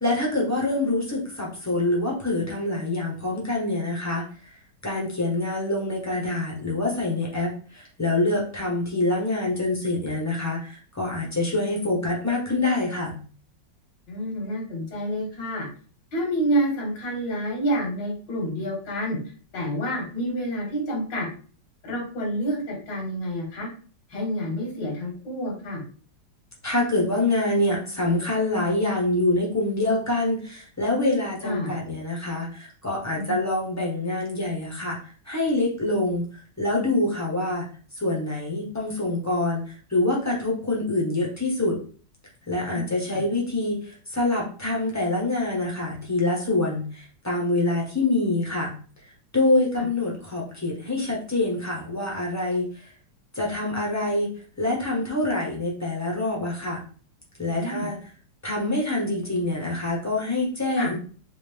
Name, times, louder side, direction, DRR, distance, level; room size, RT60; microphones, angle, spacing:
voice 1, 0.0-4.5 4.8-13.2 26.6-35.0 35.2-36.2 36.6-37.7 37.9-41.8 42.5-48.7 49.3-52.9 53.3-54.3 54.6-56.8 57.4-58.0 58.4-61.0, left 2 dB, 15° left, -3 dB, 0.7 m, -25 dB
voice 2, 14.1-15.7 16.1-19.2 19.5-21.3 21.8-23.7 24.1-25.8 31.4-31.7 33.1-33.4 42.6-43.2 49.8-49.9 57.5-57.9 60.8-60.9, equal, 75° left, -1 dB, 2.0 m, -28 dB
4.0 x 2.5 x 3.3 m, 0.41 s
omnidirectional pair, 2.0 m